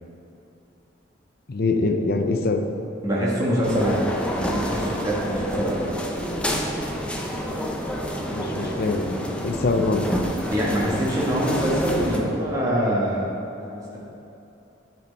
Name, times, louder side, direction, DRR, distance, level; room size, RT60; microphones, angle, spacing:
voice 1, 1.5-2.6 8.3-10.0, left 3 dB, 50° left, 5 dB, 0.6 m, -24 dB
voice 2, 3.0-4.0 4.3-6.1 10.5-13.2 13.5-14.0, equal, 20° right, -6 dB, 1.6 m, -24 dB
sound 1, 3.6-12.2, equal, 5° left, 0.5 m, -28 dB
10.5 x 4.4 x 4.1 m, 2.8 s
head